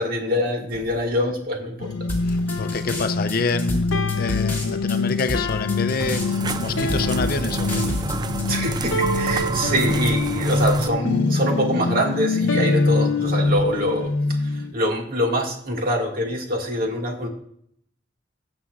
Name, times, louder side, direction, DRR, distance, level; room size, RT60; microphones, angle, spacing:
voice 1, 0.0-1.9 8.5-14.1 14.4-17.3, equal, 50° right, 1.9 m, -24 dB
sound 1, 1.8-14.7, left 3 dB, 85° left, 0.7 m, -24 dB
sound 2, 2.1-8.4, left 2 dB, 10° left, 2.9 m, -30 dB
voice 2, 2.2-3.9 4.2-7.8, left 4 dB, 50° left, 0.6 m, -27 dB
sound 3, 6.0-10.9, right 3 dB, 20° right, 0.3 m, -28 dB
19.0 x 7.1 x 2.4 m
head